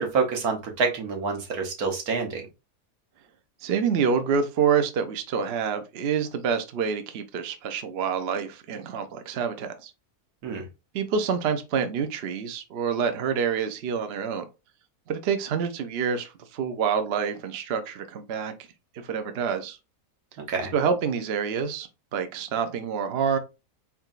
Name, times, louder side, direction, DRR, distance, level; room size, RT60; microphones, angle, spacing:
voice 1, 0.0-2.5 10.4-10.6 20.5-20.7, right 4 dB, 75° right, 1.5 m, -27 dB
voice 2, 3.6-9.9 10.9-14.5 15.1-18.5 19.0-19.8 20.7-23.4, right 6 dB, 60° right, 0.7 m, -27 dB
4.2 x 3.7 x 2.4 m
omnidirectional pair, 1.6 m